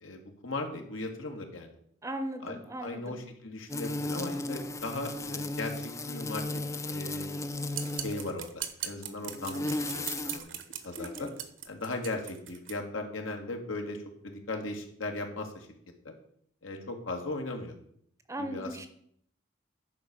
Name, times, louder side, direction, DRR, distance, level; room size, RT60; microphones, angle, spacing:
voice 1, 0.0-1.7 2.4-6.4 6.9-7.3 8.0-8.5 8.8-10.5 10.8-11.3 11.7-15.7 16.1-16.2 16.6-17.7 18.4-18.7, left 2 dB, 80° left, 3 dB, 1.8 m, -37 dB
voice 2, 2.0-3.2 11.0-11.3 18.3-18.9, right 1 dB, 15° right, 9 dB, 0.7 m, -38 dB
sound 1, 3.7-8.3 9.2-10.4, left 2 dB, 15° left, 0.4 m, -35 dB
sound 2, 7.7-12.8, right 10 dB, 70° right, 0.9 m, -40 dB
10.5 x 4.8 x 6.6 m, 0.66 s
head